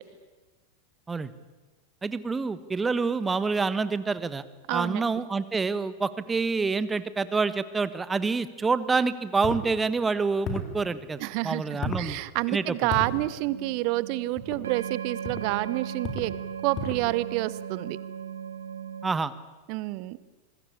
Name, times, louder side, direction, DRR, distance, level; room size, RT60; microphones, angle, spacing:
voice 1, 2.0-4.4 4.7-12.2 12.5-12.6 19.0-19.3, right 4 dB, 15° right, 15 dB, 1.3 m, -27 dB
voice 2, 4.7-5.2 11.2-16.3 16.6-18.0 19.7-20.2, right 19 dB, 45° right, 18 dB, 1.1 m, -29 dB
sound 1, 9.4-9.7 10.4-10.8 11.8-12.1 12.9-13.1 14.4-14.6 15.2-15.5 16.0-16.3 16.7-17.1, left 2 dB, 35° left, 4.0 m, -33 dB
sound 2, 12.8-19.1, right 8 dB, 70° right, 2.1 m, -38 dB
26.0 x 21.5 x 8.7 m, 1.2 s
figure-of-eight pair, 90°, 0 cm